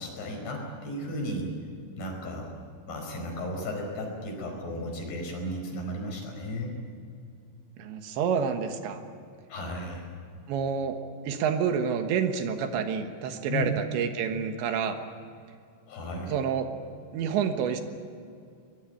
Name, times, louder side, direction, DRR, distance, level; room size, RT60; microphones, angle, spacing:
voice 1, 0.0-1.5 2.0-2.5 2.8-6.8 9.5-10.1 13.5-13.7 15.9-16.3, left 1 dB, 60° left, 2 dB, 6.7 m, -34 dB
voice 2, 7.8-9.0 10.5-11.0 11.2-15.0 16.3-16.7 17.1-17.8, right 7 dB, 75° right, 7 dB, 3.5 m, -28 dB
22.5 x 20.0 x 9.1 m, 2.4 s
omnidirectional pair, 5.4 m